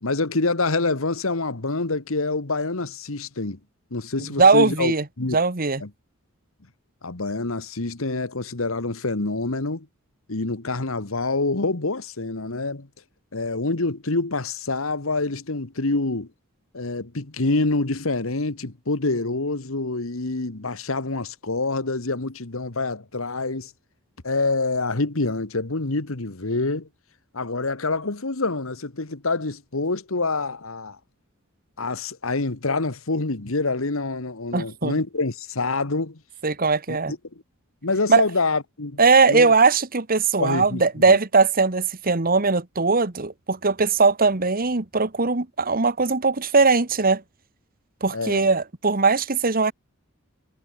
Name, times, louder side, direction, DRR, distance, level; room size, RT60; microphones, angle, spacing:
voice 1, 0.0-3.6 3.9-5.4 5.8-5.9 7.0-9.9 10.3-12.9 13.3-16.3 16.7-23.7 24.2-26.9 27.3-31.0 31.8-36.2 36.9-37.2 37.8-39.0 39.3-39.5 40.4-40.8 48.1-48.5, left 3 dB, 75° left, 1.6 m, -26 dB
voice 2, 4.4-5.0 5.3-5.8 34.5-34.9 36.4-37.1 38.1-38.2 39.0-47.2 48.0-49.7, right 4 dB, 45° right, 1.5 m, -20 dB
head